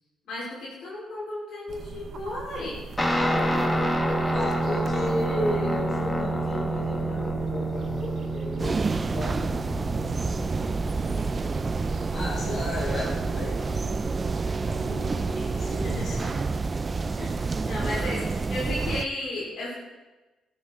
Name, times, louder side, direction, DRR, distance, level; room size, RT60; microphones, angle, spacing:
voice 1, 0.3-2.8 3.3-3.7 15.1-16.3 17.1-19.8, left 1 dB, 75° left, -5 dB, 4.6 m, -35 dB
sound 1, 1.7-16.4, right 4 dB, 55° right, 1.0 m, -41 dB
Guitar, 3.0-12.7, right 1 dB, 15° left, 1.6 m, -28 dB
voice 2, 3.1-11.4 12.1-14.1 14.7-16.3 17.8-18.1, equal, 50° left, -2 dB, 5.2 m, -35 dB
sound 2, 8.6-19.0, right 4 dB, 30° right, 0.6 m, -29 dB
14.0 x 13.5 x 4.0 m, 1.1 s
cardioid pair, 90°, 0 cm